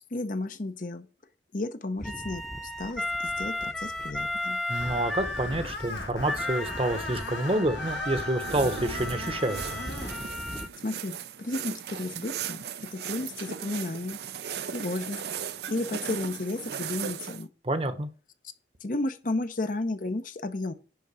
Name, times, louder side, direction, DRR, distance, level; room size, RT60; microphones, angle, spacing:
voice 1, 0.1-1.1 1.5-4.6 10.8-14.2 14.7-15.2 15.7-17.5 18.8-20.7, left 2 dB, 50° left, 0.8 m, -33 dB
sound 1, 2.0-10.7, left 1 dB, ahead, 0.8 m, -34 dB
Screech, 4.7-10.2, left 3 dB, 85° left, 1.9 m, -39 dB
voice 2, 4.7-9.8 17.6-18.1, right 1 dB, 30° right, 0.9 m, -28 dB
sound 2, 8.4-17.4, right 8 dB, 65° right, 0.5 m, -37 dB
10.5 x 3.8 x 6.9 m
head